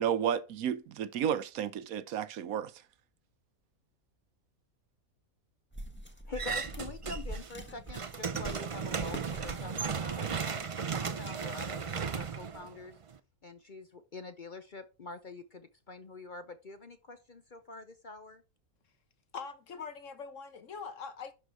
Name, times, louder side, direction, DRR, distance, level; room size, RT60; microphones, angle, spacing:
voice 1, 0.0-2.7, right 9 dB, 75° right, 1.2 m, -32 dB
sound 1, 5.7-12.5, right 1 dB, 10° left, 1.4 m, -45 dB
voice 2, 6.3-10.6 11.0-13.0 13.4-18.4, left 3 dB, 45° left, 0.7 m, -45 dB
sound 2, 6.4-7.5 7.8-13.2, right 6 dB, 60° right, 0.3 m, -35 dB
voice 3, 19.3-21.3, left 5 dB, 60° left, 1.4 m, -42 dB
11.5 x 4.6 x 4.6 m
omnidirectional pair, 1.5 m